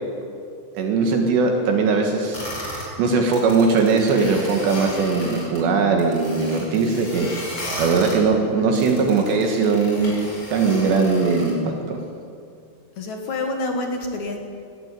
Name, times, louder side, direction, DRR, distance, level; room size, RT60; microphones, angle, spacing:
voice 1, 0.8-2.5 2.8-10.3 10.5-12.0, right 4 dB, 70° right, 2 dB, 3.6 m, -20 dB
sound 1, 2.3-2.9 3.2-5.6 6.0-8.2 8.7-11.5, left 1 dB, 25° left, 5.6 m, -34 dB
voice 2, 13.0-14.4, left 2 dB, 60° left, 3 dB, 1.9 m, -27 dB
19.5 x 15.0 x 9.2 m, 2.4 s
omnidirectional pair, 5.5 m